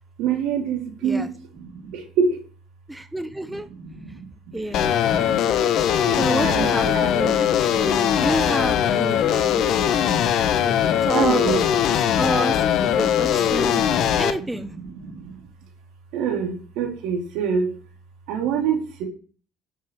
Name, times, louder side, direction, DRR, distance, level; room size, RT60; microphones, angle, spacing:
voice 1, 0.2-1.3 1.6-2.4 3.4-4.3 4.5-5.5 6.1-8.1 8.5-10.2 11.1-12.2 12.9-13.0 13.4-15.5 16.1-17.7 18.3-19.0, right 6 dB, 70° right, 1 dB, 4.2 m, -28 dB
voice 2, 2.9-3.7 4.5-5.0 6.2-9.6 10.6-11.6 12.2-14.7, right 1 dB, 10° right, 9 dB, 1.1 m, -29 dB
sound 1, 4.7-14.3, left 9 dB, 60° left, 1.3 m, -20 dB
10.5 x 8.6 x 6.5 m, 0.39 s
hypercardioid pair, 60°, 0 cm